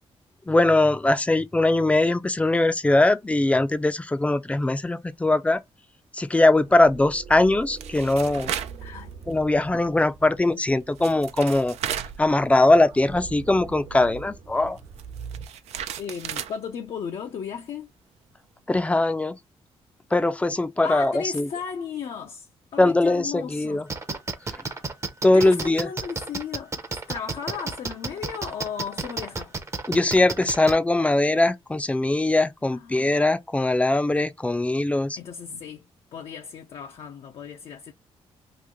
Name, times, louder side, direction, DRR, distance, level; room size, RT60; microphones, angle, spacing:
voice 1, 0.5-5.6 6.1-8.5 9.3-11.8 12.2-14.8 18.7-19.4 20.1-21.5 22.8-23.8 25.2-25.9 29.9-35.2, left 2 dB, 10° left, 0.4 m, -21 dB
sound 1, 6.4-15.5, right 6 dB, 65° right, 1.1 m, -43 dB
sound 2, 7.3-8.8 9.2-9.4 10.7-10.8 11.0-12.9 13.1-13.2 14.8-16.6, right 10 dB, 85° right, 0.4 m, -34 dB
voice 2, 8.8-9.1 16.0-17.9 20.8-23.9 25.3-29.6 32.7-33.1 35.2-35.8 36.1-37.9, left 7 dB, 60° left, 0.5 m, -35 dB
sound 3, 23.9-30.8, right 3 dB, 25° right, 0.7 m, -31 dB
3.0 x 2.5 x 3.7 m
cardioid pair, 110°, 11 cm